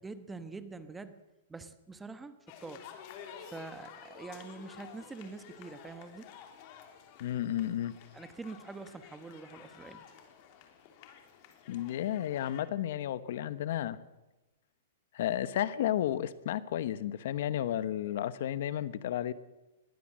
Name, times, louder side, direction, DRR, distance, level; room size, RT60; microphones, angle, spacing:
voice 1, 0.0-1.2 1.5-2.9 3.4-6.3 8.1-10.1, right 3 dB, 10° right, 12 dB, 1.1 m, -45 dB
sound 1, 2.5-12.6, left 8 dB, 40° left, 3.2 m, -52 dB
voice 2, 7.2-7.9 11.7-14.0 15.1-19.3, left 11 dB, 60° left, 15 dB, 1.1 m, -32 dB
20.0 x 19.0 x 7.5 m, 1.0 s
hypercardioid pair, 155°, 0 cm